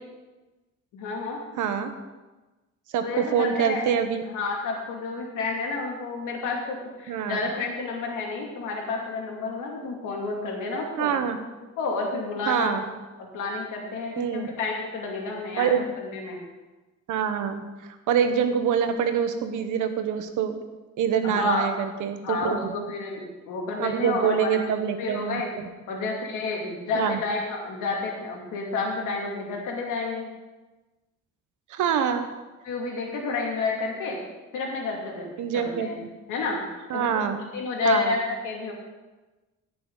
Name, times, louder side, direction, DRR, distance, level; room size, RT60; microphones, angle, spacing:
voice 1, 0.9-1.4 3.0-3.9 4.3-11.1 11.8-12.8 13.2-16.4 21.2-21.7 22.2-24.5 25.0-25.5 25.9-30.3 32.6-34.2 34.5-36.0 36.3-36.6 36.9-37.2 37.5-38.7, left 3 dB, 90° left, -1 dB, 2.6 m, -30 dB
voice 2, 1.6-1.9 2.9-4.2 7.1-7.4 11.0-11.4 12.5-12.8 14.2-14.5 15.6-15.8 17.1-20.6 21.0-22.7 23.8-25.4 26.9-27.2 31.7-32.3 35.4-35.9 36.9-37.4 37.8-38.2, right 8 dB, 80° right, 8 dB, 1.2 m, -25 dB
16.5 x 6.8 x 4.0 m, 1.2 s
cardioid pair, 90°, 30 cm